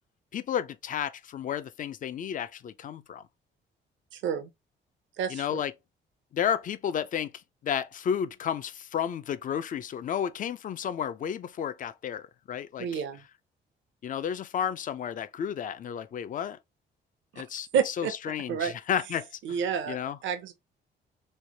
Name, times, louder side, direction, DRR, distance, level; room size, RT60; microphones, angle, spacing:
voice 1, 0.3-3.2 5.3-5.7 6.3-7.3 7.6-13.0 14.0-16.6 17.4-19.6 19.9-20.2, left 8 dB, 45° left, 0.4 m, -32 dB
voice 2, 4.1-4.5 5.2-5.6 12.8-13.2 17.3-17.4 17.7-18.1 18.5-18.7 19.4-20.0 20.2-20.5, right 7 dB, 70° right, 0.6 m, -29 dB
3.2 x 2.1 x 2.7 m
cardioid pair, 90°, 20 cm